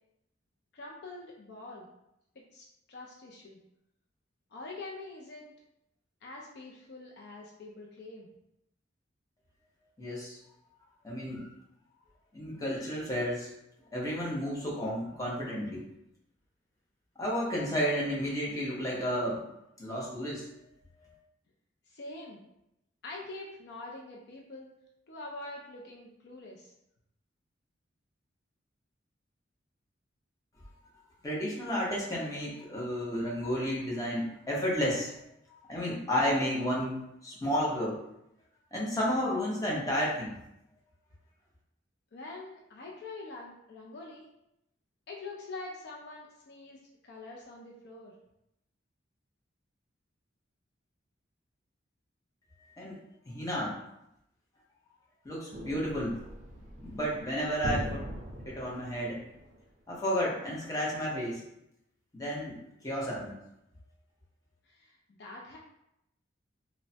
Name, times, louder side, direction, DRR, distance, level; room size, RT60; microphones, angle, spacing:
voice 1, 0.7-1.9 2.5-3.6 4.5-5.5 6.2-8.3 21.9-22.4 23.0-24.7 25.1-26.7 42.1-44.3 45.1-48.1 64.6-65.6, left 2 dB, 55° left, -1 dB, 0.4 m, -45 dB
voice 2, 10.0-10.4 11.0-11.5 12.3-13.5 13.9-15.8 17.2-19.4 19.8-20.5 31.2-35.1 35.6-38.0 38.7-40.4 52.6-53.0 53.3-53.8 55.2-56.2 56.8-58.1 58.4-59.2 59.9-61.4 62.1-62.6 62.8-63.3, equal, 20° left, -5 dB, 0.6 m, -32 dB
sound 1, 55.5-59.6, equal, 40° right, 0.4 m, -40 dB
3.1 x 2.0 x 2.6 m, 0.81 s
head